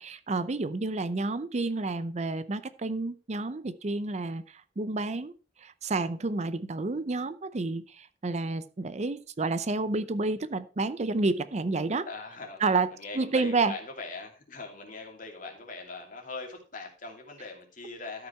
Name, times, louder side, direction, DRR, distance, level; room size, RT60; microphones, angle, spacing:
voice 1, 0.0-5.3 5.6-12.1 12.6-12.9 13.1-13.7, right 3 dB, 40° right, 14 dB, 0.6 m, -30 dB
voice 2, 12.1-12.6 12.9-18.3, left 3 dB, 50° left, 2 dB, 2.6 m, -41 dB
13.0 x 5.7 x 4.4 m, 0.34 s
head